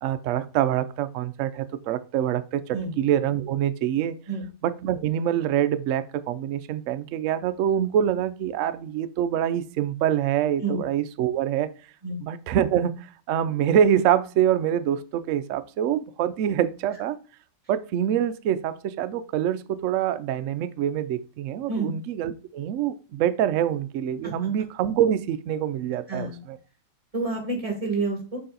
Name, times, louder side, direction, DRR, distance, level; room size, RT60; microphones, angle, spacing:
voice 1, 0.0-4.2 4.6-11.7 12.2-17.2 17.7-26.6, right 10 dB, 85° right, 0.6 m, -25 dB
voice 2, 27.1-28.4, right 3 dB, 20° right, 1.9 m, -29 dB
6.8 x 4.9 x 3.8 m
omnidirectional pair, 1.9 m